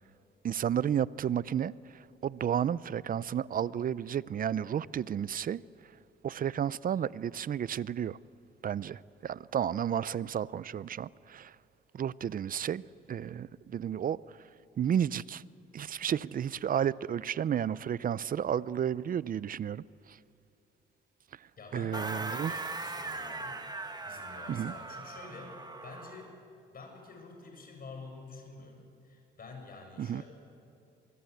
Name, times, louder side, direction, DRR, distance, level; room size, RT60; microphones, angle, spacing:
voice 1, 0.4-5.6 6.2-8.2 8.6-11.5 11.9-12.8 13.1-14.2 14.8-15.4 15.7-20.2 21.7-22.5 24.5-24.7 30.0-30.2, right 9 dB, 45° right, 0.6 m, -32 dB
voice 2, 21.6-23.6 24.0-26.3 26.7-30.2, left 3 dB, 45° left, 7.0 m, -48 dB
sound 1, 21.9-26.3, right 3 dB, 20° right, 1.6 m, -40 dB
24.0 x 23.5 x 8.2 m
cardioid pair, 90°, 20 cm